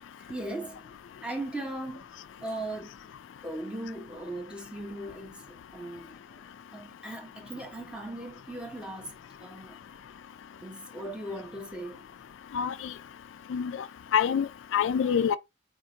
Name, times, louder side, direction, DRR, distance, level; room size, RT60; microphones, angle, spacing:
voice 1, 0.2-0.9 1.2-3.1 3.4-9.8 10.6-12.0 15.1-15.4, right 1 dB, 5° right, 1.1 m, -39 dB
voice 2, 12.5-12.9 13.5-13.7 14.1-15.4, left 8 dB, 90° left, 0.3 m, -26 dB
4.3 x 2.8 x 3.7 m
head